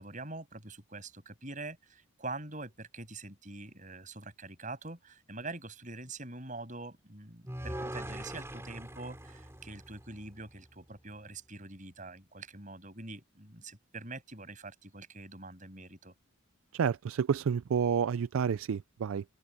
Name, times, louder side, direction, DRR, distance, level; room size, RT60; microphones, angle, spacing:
voice 1, 0.0-16.1, right 2 dB, 35° right, 6.9 m, -44 dB
sound 1, 7.5-10.7, right 1 dB, 10° right, 3.3 m, -42 dB
voice 2, 16.7-19.2, right 7 dB, 70° right, 0.4 m, -29 dB
open air
head